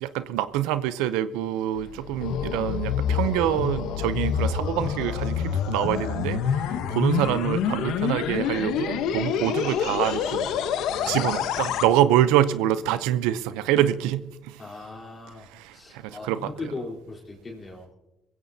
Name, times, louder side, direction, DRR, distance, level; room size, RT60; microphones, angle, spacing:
voice 1, 0.0-10.5 11.1-14.6 15.4-16.7, right 12 dB, 85° right, 0.6 m, -26 dB
sound 1, 1.8-11.9, left 8 dB, 80° left, 1.0 m, -27 dB
voice 2, 11.0-11.3 14.6-15.5 15.7-17.9, left 3 dB, 35° left, 3.9 m, -38 dB
21.0 x 15.5 x 2.8 m
supercardioid pair, 70°, 0 cm